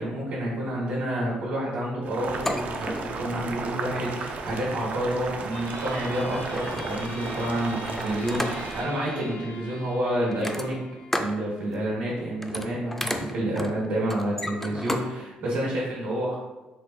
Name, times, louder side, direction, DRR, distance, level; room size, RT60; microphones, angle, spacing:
voice 1, 0.0-10.8 11.2-16.4, right 1 dB, 90° right, -7 dB, 1.3 m, -29 dB
Boiling, 2.0-8.8, right 4 dB, 60° right, 0.4 m, -34 dB
sound 1, 2.4-3.2 4.3-4.6 5.7-5.8 6.2-7.1 7.9-8.8 10.3-11.4 11.7-12.0 12.3-15.1 15.5-15.6, left 1 dB, 10° left, 0.4 m, -33 dB
sound 2, 5.5-12.5, left 3 dB, 55° left, 0.7 m, -44 dB
4.2 x 2.0 x 3.9 m, 1.1 s
supercardioid pair, 70°, 3 cm